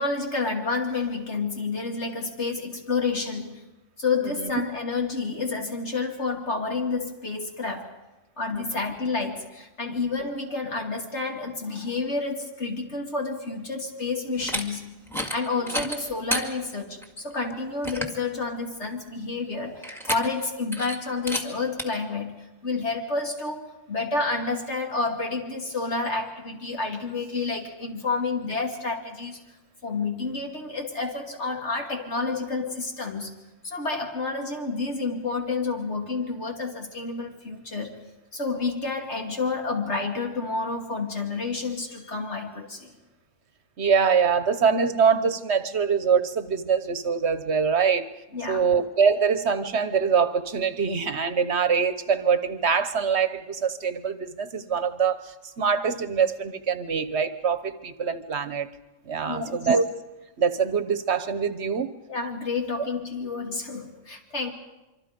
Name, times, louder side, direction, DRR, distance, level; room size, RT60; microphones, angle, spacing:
voice 1, 0.0-3.6 4.0-8.0 8.4-14.9 15.3-29.4 29.8-33.3 33.6-38.0 38.3-42.9 48.3-48.7 59.2-59.7 62.1-64.5, left 3 dB, 60° left, 1 dB, 2.9 m, -29 dB
sound 1, 14.3-14.6 15.1-15.4 15.7-16.5 17.0-17.1 17.5-17.6 17.8-18.2 19.8-20.5 20.7-21.0 21.3-21.4 21.8-21.9, equal, ahead, 1.9 m, -30 dB
voice 2, 43.8-48.1 48.5-58.7 59.1-59.8 60.4-61.9, right 6 dB, 60° right, 11 dB, 1.2 m, -24 dB
25.5 x 25.0 x 5.2 m, 1.0 s
omnidirectional pair, 1.3 m